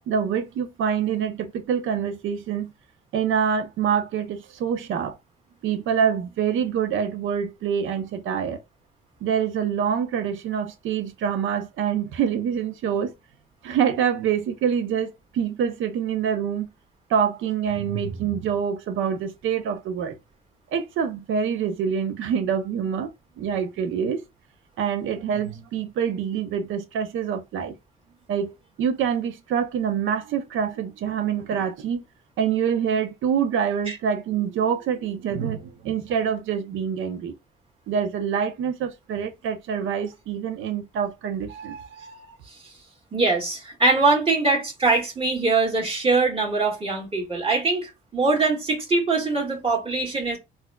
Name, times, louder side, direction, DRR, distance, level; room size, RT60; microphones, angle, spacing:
voice 1, 0.1-2.7 3.1-5.2 5.6-8.6 9.2-13.1 13.6-16.7 17.1-20.2 20.7-23.1 23.4-24.2 24.8-27.8 28.3-32.0 32.4-37.3 37.9-42.3, right 7 dB, 80° right, 0.6 m, -26 dB
voice 2, 43.1-50.4, right 3 dB, 30° right, 1.7 m, -22 dB
4.0 x 2.6 x 2.2 m
cardioid pair, 90°, 20 cm